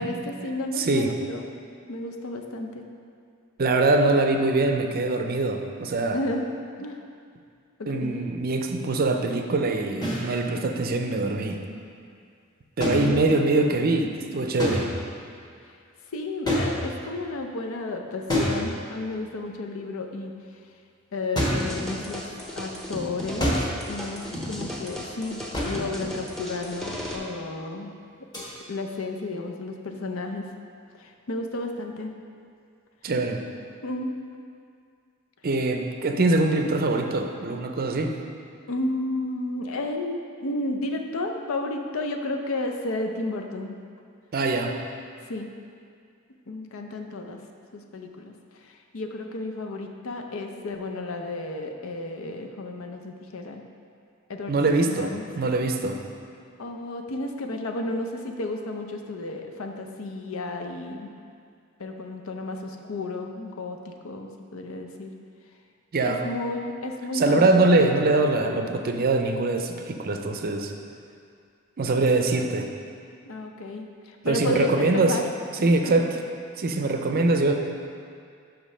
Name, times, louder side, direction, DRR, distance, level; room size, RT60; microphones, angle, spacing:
voice 1, 0.0-1.5 1.9-2.9 6.1-6.4 6.8-7.0 7.8-8.4 12.8-13.5 16.1-20.3 21.1-22.3 22.6-23.6 23.9-27.9 28.7-30.5 31.0-32.2 33.8-34.2 38.7-43.8 45.3-45.5 46.5-47.4 47.7-48.3 48.6-53.6 54.3-54.5 54.8-55.2 56.6-61.1 61.8-65.1 66.0-67.6 73.3-75.2 75.9-76.0, left 2 dB, 75° left, 3 dB, 0.6 m, -32 dB
voice 2, 0.8-1.1 3.6-6.2 7.9-11.6 12.8-14.9 33.0-33.4 35.4-38.1 44.3-44.7 54.5-56.0 65.9-66.2 67.1-70.7 71.8-72.7 74.2-75.2 75.6-76.1 76.6-77.5, right 2 dB, 45° right, 4 dB, 0.5 m, -23 dB
sound 1, 10.0-10.3 12.8-13.6 14.6-15.2 16.5-17.2 18.3-19.1 21.4-21.8 23.4-23.9 25.5-26.0 28.3-28.5, equal, 20° left, 1.2 m, -27 dB
sound 2, 21.5-27.2, equal, 5° left, 0.8 m, -36 dB
5.9 x 5.1 x 5.5 m, 2.3 s
head